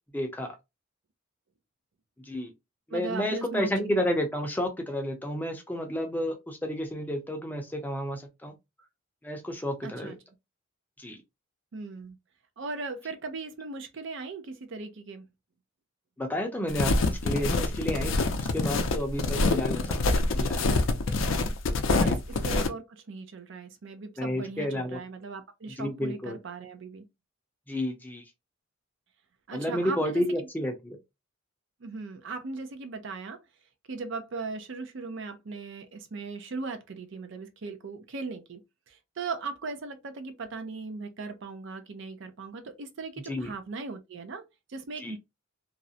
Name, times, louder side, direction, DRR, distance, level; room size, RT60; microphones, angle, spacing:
voice 1, 0.1-0.6 2.3-2.5 2.9-8.5 9.2-10.1 11.0-11.2 16.2-20.6 22.0-22.2 24.2-25.0 25.8-26.4 27.7-28.2 29.5-31.0 43.3-43.5 45.0-45.1, left 1 dB, 10° left, 0.5 m, -31 dB
voice 2, 2.9-4.0 9.8-10.2 11.7-12.2 12.6-15.3 22.0-27.0 29.5-30.2 31.8-33.4 33.9-38.6 38.9-45.2, right 4 dB, 65° right, 0.5 m, -38 dB
sound 1, 16.7-22.7, left 3 dB, 70° left, 0.4 m, -26 dB
2.4 x 2.0 x 2.6 m
head